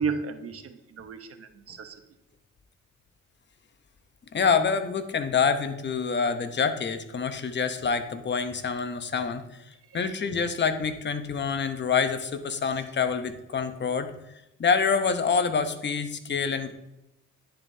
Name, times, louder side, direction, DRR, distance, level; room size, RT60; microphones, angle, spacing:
voice 1, 0.0-1.9 9.9-10.0, right 5 dB, 50° right, 7 dB, 1.0 m, -33 dB
voice 2, 4.3-9.4 9.9-14.1 14.6-16.7, left 5 dB, 35° left, 9 dB, 0.9 m, -26 dB
10.0 x 7.5 x 2.8 m, 0.91 s
cardioid pair, 90°, 30 cm